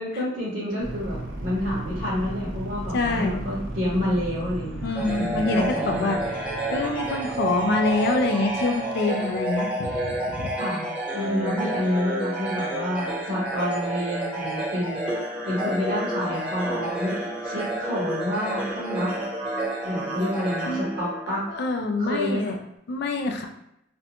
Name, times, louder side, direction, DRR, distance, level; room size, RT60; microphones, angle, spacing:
voice 1, 0.0-6.2 10.6-15.0 15.4-19.1 19.8-21.4 22.0-22.5, left 1 dB, 45° right, -10 dB, 0.9 m, -29 dB
sound 1, 0.8-9.4, right 1 dB, 75° right, 0.5 m, -36 dB
voice 2, 2.9-3.4 4.8-6.4 6.7-10.5 11.3-11.7 20.7-20.8 21.3-22.6 22.9-23.5, left 3 dB, 55° left, 4 dB, 0.4 m, -26 dB
sound 2, 5.0-21.7, right 1 dB, 5° right, 0.8 m, -30 dB
2.5 x 2.1 x 2.8 m, 0.79 s
head